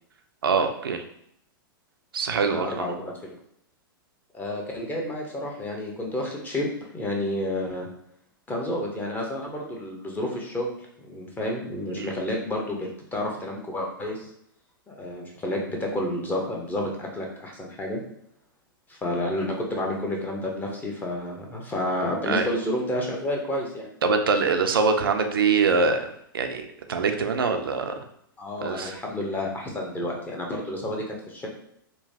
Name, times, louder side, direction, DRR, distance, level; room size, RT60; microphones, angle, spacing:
voice 1, 0.4-1.0 2.1-2.9 11.9-12.1 22.3-22.5 24.0-26.1 26.3-27.9 28.6-28.9, right 4 dB, 80° right, 5 dB, 0.4 m, -24 dB
voice 2, 2.4-3.4 4.3-7.9 8.5-10.7 11.0-14.3 14.9-18.0 18.9-23.9 28.4-31.5, left 1 dB, 15° left, 0 dB, 0.7 m, -30 dB
3.0 x 2.1 x 2.7 m, 0.71 s
hypercardioid pair, 105°, 12 cm